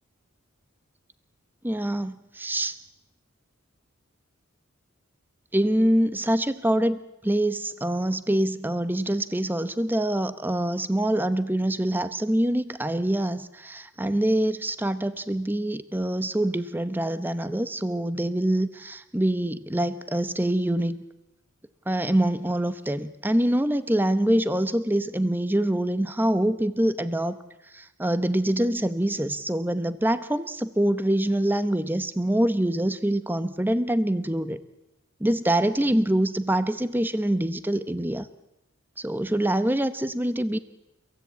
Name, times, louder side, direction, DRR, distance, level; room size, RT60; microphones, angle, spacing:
voice 1, 1.6-2.8 5.5-21.0 21.9-27.4 27.7-34.6 35.2-38.3 39.0-40.6, right 1 dB, 10° right, 12 dB, 0.8 m, -25 dB
30.0 x 16.0 x 8.4 m, 0.96 s
head